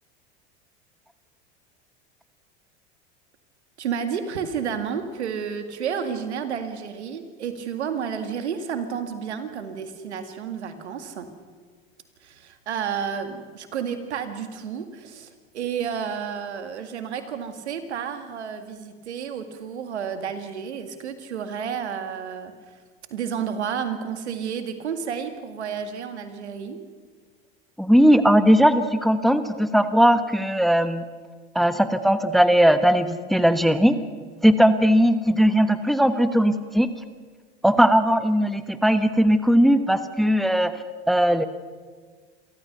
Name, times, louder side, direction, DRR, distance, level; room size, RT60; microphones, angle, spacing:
voice 1, 3.8-11.3 12.2-22.5 23.1-26.8, right 7 dB, 85° right, 8 dB, 2.1 m, -31 dB
voice 2, 27.8-31.0 31.5-33.9 34.4-36.9 37.6-40.7 41.1-41.5, equal, ahead, 10 dB, 1.1 m, -18 dB
28.0 x 14.0 x 6.7 m, 1.5 s
hypercardioid pair, 95°, 33 cm